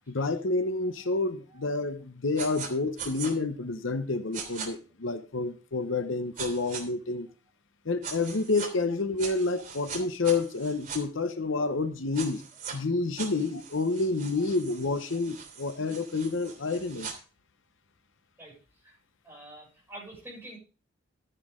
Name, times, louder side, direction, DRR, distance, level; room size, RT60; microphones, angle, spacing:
voice 1, 0.1-7.3 7.8-12.4 12.7-17.1, left 3 dB, 70° left, 0.8 m, -29 dB
sound 1, 2.4-2.7 3.0-3.3 4.3-4.7 6.4-6.8 8.0-8.7 9.2-11.0 12.1-12.7 13.2-17.1, right 6 dB, 40° right, 3.0 m, -40 dB
voice 2, 19.2-20.6, right 1 dB, 10° right, 6.9 m, -45 dB
12.0 x 10.0 x 3.7 m
head